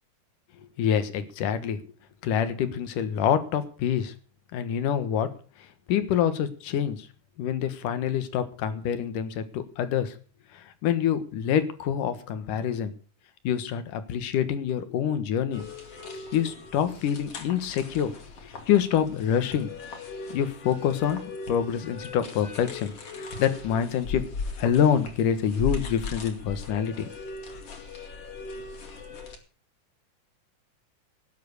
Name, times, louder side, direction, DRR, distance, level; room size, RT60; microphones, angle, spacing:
voice 1, 0.8-1.8 2.2-4.1 4.5-5.3 5.9-7.1 7.4-10.1 10.5-12.9 13.4-15.7 16.3-18.1 18.4-19.7 20.3-24.2 24.6-27.1 27.5-27.6, left 9 dB, 75° left, 11 dB, 2.9 m, -26 dB
sound 1, 15.5-29.4, left 4 dB, 50° left, 3.1 m, -39 dB
18.0 x 7.7 x 6.6 m, 0.38 s
omnidirectional pair, 3.9 m